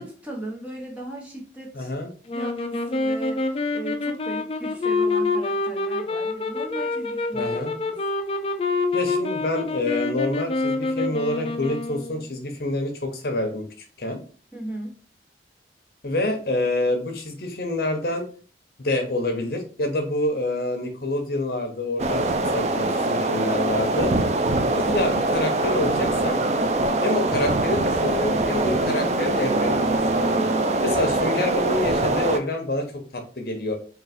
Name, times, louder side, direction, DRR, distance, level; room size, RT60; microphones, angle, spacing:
voice 1, 0.0-1.9 2.3-8.0 14.5-15.0, right 1 dB, 10° right, -2 dB, 1.0 m, -37 dB
voice 2, 1.7-2.1 7.3-7.7 8.9-13.7 14.0-14.2 16.0-18.3 18.8-22.2 22.5-24.1 24.7-26.4 27.0-30.5 30.8-32.9 33.1-33.8, left 2 dB, 60° left, 5 dB, 0.8 m, -27 dB
sound 1, 2.3-12.3, left 3 dB, 30° left, 0.4 m, -26 dB
sound 2, 22.0-32.4, right 2 dB, 40° right, 0.3 m, -23 dB
3.9 x 2.4 x 4.2 m, 0.42 s
head